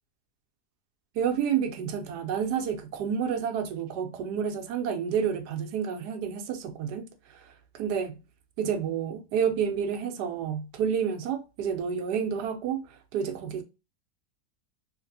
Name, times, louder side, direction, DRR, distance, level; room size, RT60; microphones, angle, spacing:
voice 1, 1.1-8.1 8.6-13.6, right 7 dB, 80° right, 1.1 m, -30 dB
3.2 x 2.9 x 2.5 m
omnidirectional pair, 1.8 m